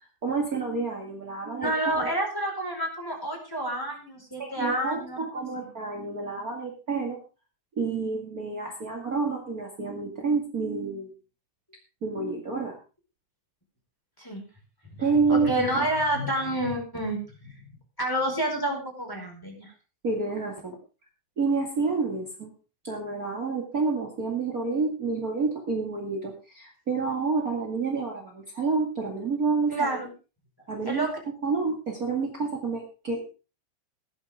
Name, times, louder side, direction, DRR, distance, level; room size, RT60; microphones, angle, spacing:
voice 1, 0.2-2.1 4.4-7.2 7.7-11.1 12.0-12.8 15.0-15.9 20.0-20.7 21.4-22.5 22.8-29.9 30.7-33.3, right 4 dB, 40° right, 1 dB, 1.2 m, -29 dB
voice 2, 1.6-5.2 5.6-5.7 14.2-14.4 14.9-19.7 29.7-30.1 30.8-31.1, right 1 dB, 5° left, 0 dB, 4.0 m, -29 dB
16.5 x 13.0 x 3.6 m, 0.33 s
omnidirectional pair, 5.5 m